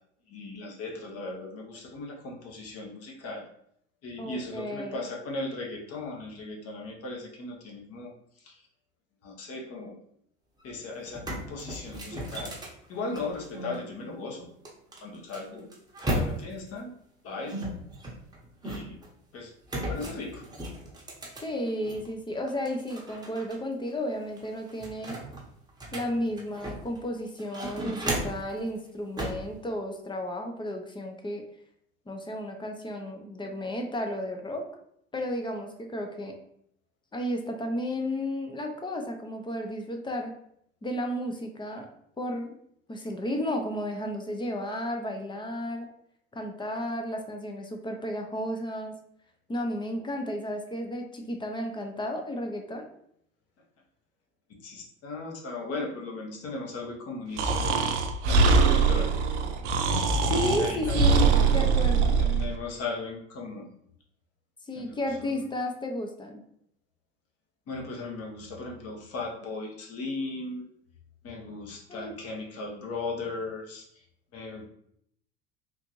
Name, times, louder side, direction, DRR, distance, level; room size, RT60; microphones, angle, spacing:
voice 1, 0.3-3.4 4.0-8.6 9.2-10.0 10.6-12.5 12.9-14.5 15.0-15.7 16.1-16.9 17.2-17.6 18.6-19.0 19.3-20.4 54.5-59.1 60.6-61.2 62.2-63.7 64.7-65.5 67.7-70.6 71.2-74.0 74.3-74.7, left 3 dB, 45° left, 0 dB, 1.1 m, -37 dB
voice 2, 4.2-5.0 21.4-25.2 25.9-31.4 32.1-34.7 35.1-36.4 37.1-40.3 40.8-41.9 42.2-42.6 42.9-45.9 46.3-48.9 49.5-52.9 60.3-62.2 64.7-66.4 71.9-72.1, left 1 dB, 15° left, 3 dB, 0.5 m, -33 dB
sound 1, 10.6-10.7 11.0-13.8 14.7-16.7 17.5-19.1 19.7-22.1 22.5-23.6 23.9-24.0 24.4-27.0 27.4-28.5 29.2-29.5, right 1 dB, 10° right, 0.9 m, -35 dB
Breathing, 57.4-62.5, right 4 dB, 85° right, 0.5 m, -22 dB
3.6 x 2.5 x 3.0 m, 0.71 s
hypercardioid pair, 80°, 34 cm